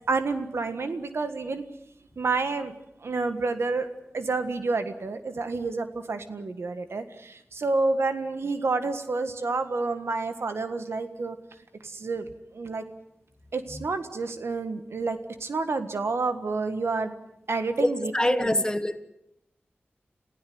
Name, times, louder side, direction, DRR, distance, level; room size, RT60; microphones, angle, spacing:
voice 1, 0.1-1.6 2.2-2.7 3.0-3.9 4.1-11.4 11.8-12.3 12.5-12.8 13.5-17.1 17.5-18.6, right 3 dB, 90° right, 9 dB, 1.6 m, -29 dB
voice 2, 17.8-19.0, left 1 dB, 20° left, 10 dB, 1.5 m, -25 dB
28.5 x 16.0 x 7.9 m, 0.84 s
wide cardioid pair, 65°, 4 cm